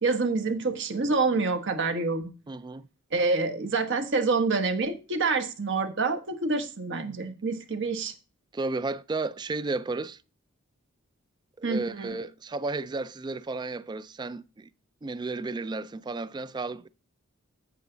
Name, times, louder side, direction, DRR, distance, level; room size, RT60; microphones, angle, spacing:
voice 1, 0.0-2.3 3.1-8.1 11.6-12.2, right 3 dB, 60° right, 1.1 m, -27 dB
voice 2, 2.5-2.9 8.5-10.2 11.6-14.7 15.0-16.9, right 3 dB, 20° right, 0.3 m, -33 dB
8.2 x 8.0 x 3.8 m
head